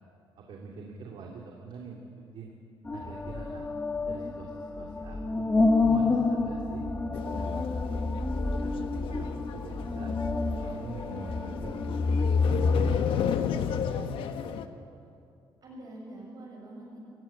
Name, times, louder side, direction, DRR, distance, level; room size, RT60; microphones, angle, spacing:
voice 1, 0.4-2.5 2.9-3.7 4.0-5.5 5.8-8.0 8.4-10.1 10.5-12.0 12.4-14.1, right 4 dB, 65° right, 0 dB, 2.6 m, -45 dB
sound 1, 2.9-13.0, left 3 dB, 20° left, 1.4 m, -28 dB
sound 2, 7.1-14.6, left 8 dB, 75° left, 1.2 m, -34 dB
voice 2, 15.6-17.0, right 1 dB, 45° right, -2 dB, 6.9 m, -45 dB
26.5 x 16.0 x 8.6 m, 2.6 s
cardioid pair, 130°, 9 cm